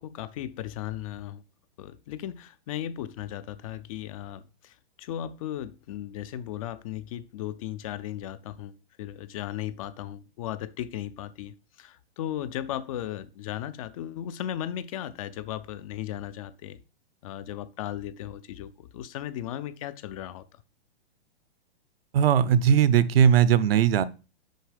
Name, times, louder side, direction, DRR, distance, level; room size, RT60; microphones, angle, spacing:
voice 1, 0.0-1.4 1.8-16.8 17.2-20.6, left 11 dB, 35° left, 0.4 m, -36 dB
voice 2, 22.1-24.0, right 8 dB, 65° right, 0.7 m, -19 dB
6.5 x 4.5 x 5.0 m
hypercardioid pair, 140°, 31 cm